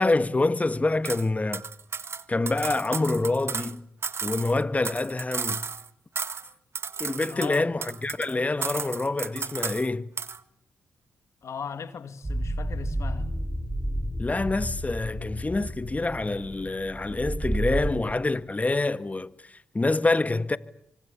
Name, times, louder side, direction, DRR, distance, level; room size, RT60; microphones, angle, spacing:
voice 1, 0.0-1.7 2.3-3.8 4.2-5.7 7.0-10.1 14.2-20.6, left 2 dB, 25° left, 1.7 m, -26 dB
sound 1, 1.0-1.2 1.5-3.7 4.0-5.9 6.2-6.5 6.7-8.3 8.6-9.9 10.2-10.4, right 5 dB, 50° right, 1.5 m, -33 dB
voice 2, 7.3-7.7 11.4-13.3, left 6 dB, 65° left, 2.6 m, -37 dB
sound 2, 12.2-18.0, right 1 dB, 20° right, 7.9 m, -31 dB
28.0 x 25.0 x 7.1 m
supercardioid pair, 45°, 5 cm